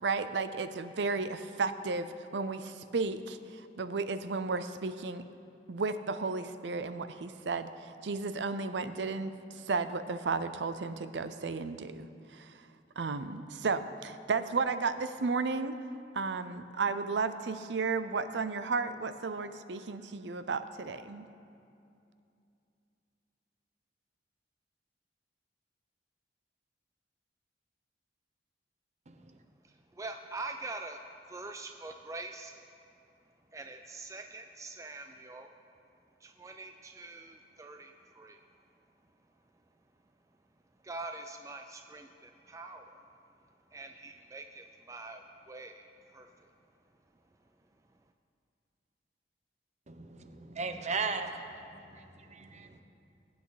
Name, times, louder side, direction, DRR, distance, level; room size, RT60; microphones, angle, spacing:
voice 1, 0.0-5.2 5.7-12.5 13.0-15.8 16.1-21.3, right 4 dB, 75° right, 12 dB, 0.6 m, -33 dB
voice 2, 29.6-31.0 31.3-32.6 33.5-35.5 36.2-38.4 40.8-43.0 43.7-46.5, right 3 dB, 20° right, 5 dB, 0.4 m, -44 dB
voice 3, 49.9-51.4 51.9-52.8, right 4 dB, 40° right, 6 dB, 0.9 m, -36 dB
21.5 x 8.6 x 4.0 m, 2.6 s
head